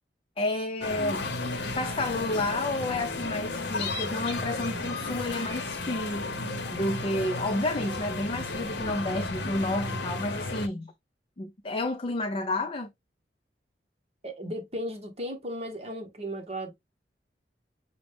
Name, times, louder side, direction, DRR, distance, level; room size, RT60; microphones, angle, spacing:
voice 1, 0.4-1.3 1.7-6.3 6.7-10.9 11.4-12.9, left 2 dB, 30° left, 0.5 m, -30 dB
sound 1, 0.8-10.7, left 3 dB, 75° left, 0.9 m, -33 dB
voice 2, 14.2-16.7, equal, 35° right, 1.1 m, -35 dB
6.1 x 2.2 x 3.4 m
head